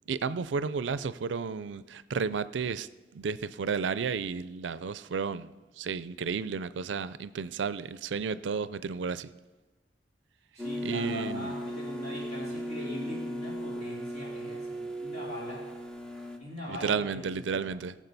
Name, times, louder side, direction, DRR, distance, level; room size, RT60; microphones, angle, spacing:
voice 1, 0.1-5.5 5.8-9.3 10.8-11.5 16.7-18.0, right 5 dB, 85° right, 15 dB, 0.4 m, -32 dB
voice 2, 10.5-15.6 16.4-17.6, left 1 dB, 40° left, -6 dB, 4.2 m, -41 dB
sound 1, 10.6-16.4, equal, 5° left, 0.8 m, -37 dB
17.5 x 7.3 x 4.1 m, 1.2 s
head